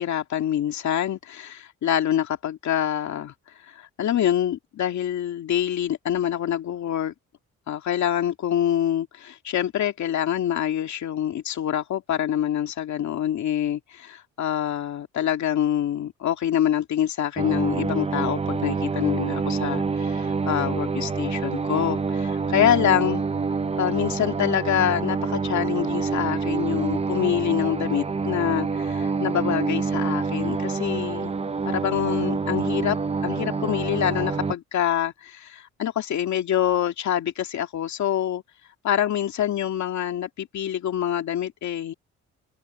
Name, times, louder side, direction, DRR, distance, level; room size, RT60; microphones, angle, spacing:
voice 1, 0.0-3.3 3.6-7.1 7.7-23.2 23.8-31.3 31.7-33.0 33.2-38.4 38.8-41.9, left 10 dB, 70° left, 2.3 m, -26 dB
sound 1, 17.4-34.5, right 4 dB, 20° right, 0.7 m, -27 dB
open air
cardioid pair, 90°, 30 cm